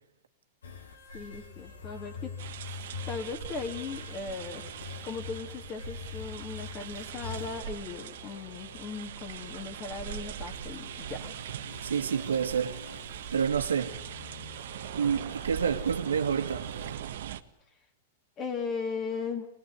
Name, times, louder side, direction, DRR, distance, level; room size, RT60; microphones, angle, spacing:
sound 1, 0.6-17.0, left 5 dB, 85° left, 6.5 m, -45 dB
voice 1, 1.1-2.3 2.6-2.8 3.1-11.3 18.4-19.5, left 5 dB, 35° left, 3.3 m, -38 dB
sound 2, 2.4-17.4, right 10 dB, 70° right, 1.6 m, -41 dB
voice 2, 11.8-12.8 13.3-14.0 15.0-16.7, right 7 dB, 85° right, 2.1 m, -28 dB
24.0 x 20.5 x 9.7 m
hypercardioid pair, 115°, 0 cm